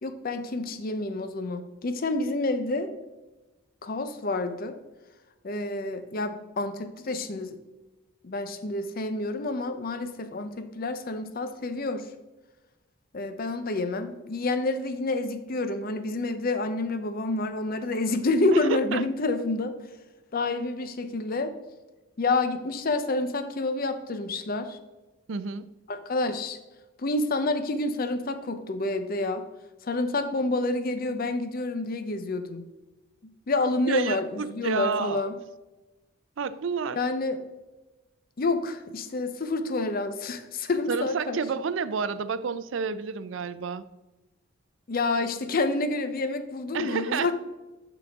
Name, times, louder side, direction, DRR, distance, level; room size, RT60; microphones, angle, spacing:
voice 1, 0.0-2.9 3.8-4.8 5.4-7.6 8.2-12.1 13.1-19.7 20.3-21.5 22.2-24.8 25.9-26.6 27.0-29.4 29.8-32.6 33.5-35.3 36.9-37.4 38.4-41.4 44.9-47.3, left 2 dB, 45° left, 9 dB, 0.6 m, -28 dB
voice 2, 18.5-19.0 25.3-25.7 33.9-35.2 36.4-37.0 40.9-43.8 46.7-47.3, right 5 dB, 65° right, 15 dB, 0.4 m, -30 dB
11.5 x 4.0 x 3.5 m, 1.1 s
head